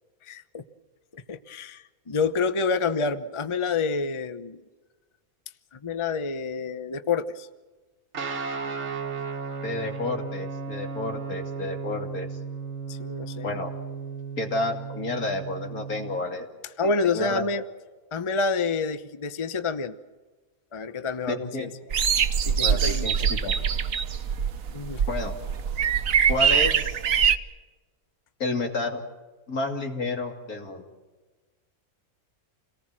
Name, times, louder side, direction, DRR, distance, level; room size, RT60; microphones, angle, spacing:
voice 1, 0.2-0.6 1.1-4.6 5.7-7.5 12.9-13.6 16.8-17.6 18.1-19.9 20.7-21.7 22.4-23.1 24.7-25.0, left 4 dB, 25° left, 11 dB, 0.8 m, -28 dB
Guitar, 8.1-16.2, right 5 dB, 50° right, 1.6 m, -35 dB
voice 2, 9.6-12.3 13.4-13.7 14.4-16.5 16.8-17.4 21.3-21.7 22.6-23.6 25.1-25.3 26.3-27.0 28.4-29.0 29.5-30.8, left 2 dB, 75° left, 3 dB, 3.1 m, -30 dB
sound 1, 21.9-27.4, right 7 dB, 65° right, 1.4 m, -23 dB
28.0 x 19.0 x 7.6 m, 1.3 s
omnidirectional pair, 1.5 m